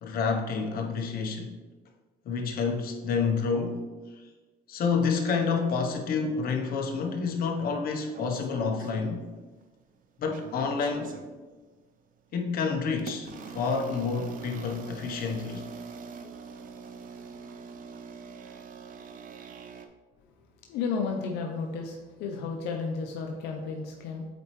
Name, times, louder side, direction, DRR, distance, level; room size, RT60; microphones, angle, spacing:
voice 1, 0.0-1.5 2.2-3.8 4.7-9.2 10.2-11.2 12.3-15.6, left 5 dB, 60° left, 3 dB, 0.9 m, -29 dB
sound 1, 8.1-9.6 10.0-11.3 12.0-12.2 13.0-19.9, right 5 dB, 55° right, 0.6 m, -44 dB
voice 2, 20.7-24.3, left 5 dB, 85° left, 2 dB, 0.7 m, -33 dB
8.2 x 4.2 x 3.2 m, 1.3 s
cardioid pair, 110°, 17 cm